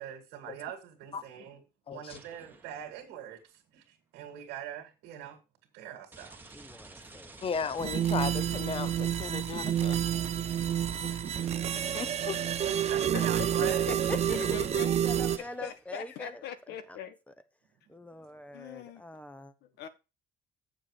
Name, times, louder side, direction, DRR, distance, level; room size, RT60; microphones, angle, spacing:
voice 1, 0.0-1.6 1.9-5.4 5.7-6.5 12.6-13.8, right 9 dB, 90° right, 2.1 m, -43 dB
voice 2, 1.9-2.2 7.4-10.1 10.6-11.1 11.9-12.4, left 6 dB, 35° left, 0.8 m, -36 dB
sound 1, 2.1-3.1 6.1-15.9, right 2 dB, 10° right, 1.3 m, -51 dB
voice 3, 6.5-7.8 13.9-14.2 14.8-17.0 17.9-19.5, left 1 dB, 10° left, 0.9 m, -43 dB
sound 2, 7.8-15.4, right 10 dB, 40° right, 0.6 m, -29 dB
voice 4, 13.1-14.0 14.3-17.2 18.5-19.1 19.6-19.9, left 10 dB, 80° left, 1.3 m, -41 dB
7.5 x 6.6 x 4.9 m
cardioid pair, 110°, 17 cm